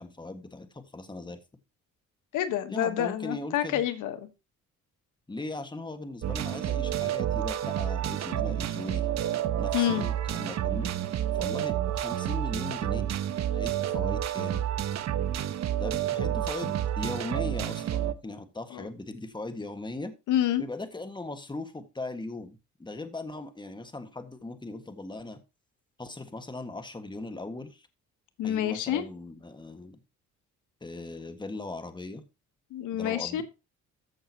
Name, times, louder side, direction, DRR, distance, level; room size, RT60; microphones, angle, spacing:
voice 1, 0.0-1.4 2.7-3.8 5.3-9.1 9.6-10.9 11.3-13.1 13.5-14.7 15.8-20.1 20.6-25.4 26.0-27.9 28.4-30.0 30.8-32.2 32.9-33.4, left 2 dB, 15° left, 1.6 m, -39 dB
voice 2, 2.3-4.2 9.7-10.0 18.7-18.9 20.3-20.6 28.4-29.0 32.7-33.4, left 11 dB, 90° left, 1.3 m, -28 dB
sound 1, 6.2-18.1, right 11 dB, 60° right, 1.0 m, -29 dB
14.5 x 6.3 x 2.9 m
cardioid pair, 90°, 30 cm